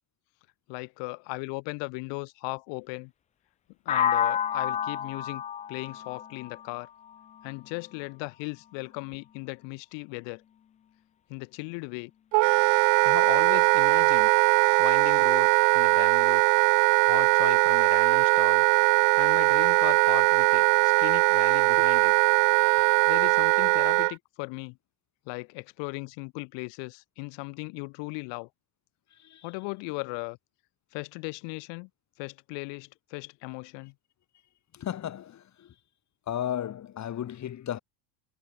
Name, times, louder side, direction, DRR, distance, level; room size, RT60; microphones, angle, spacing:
voice 1, 0.7-3.1 3.8-5.4 5.7-6.9 7.4-10.4 11.3-12.1 13.0-14.3 14.8-16.4 17.1-18.6 19.1-22.1 23.1-24.8 25.3-28.5 29.4-30.4 30.9-31.9 32.2-33.9, left 34 dB, 75° left, 6.2 m, -37 dB
sound 1, 3.9-7.8, left 9 dB, 20° left, 0.3 m, -30 dB
Wind instrument woodwind instrument, 12.3-24.1, right 34 dB, 70° right, 1.0 m, -21 dB
voice 2, 29.1-29.5 34.7-35.7 36.3-37.8, left 10 dB, 40° left, 5.6 m, -35 dB
cardioid pair, 135°, 44 cm